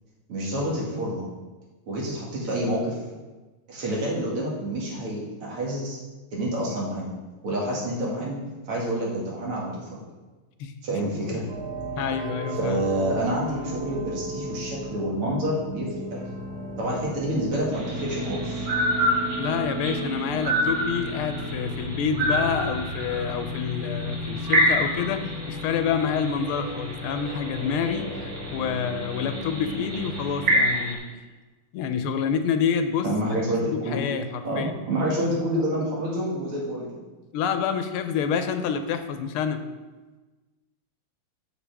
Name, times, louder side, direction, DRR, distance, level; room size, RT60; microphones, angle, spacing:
voice 1, 0.3-1.2 1.9-3.0 3.7-6.0 6.3-7.1 7.4-8.4 8.7-10.0 10.8-11.4 12.6-16.2 16.8-18.7 33.0-34.0 34.4-37.0, right 1 dB, 90° right, -4 dB, 2.8 m, -28 dB
sound 1, 11.5-30.6, equal, 70° right, 2.6 m, -35 dB
voice 2, 11.9-12.9 19.4-31.0 31.7-33.1 33.7-34.8 37.3-39.6, left 7 dB, 85° left, 8 dB, 1.5 m, -28 dB
sound 2, 17.7-31.0, equal, 45° right, 1.7 m, -29 dB
7.3 x 6.9 x 3.4 m, 1.2 s
omnidirectional pair, 2.4 m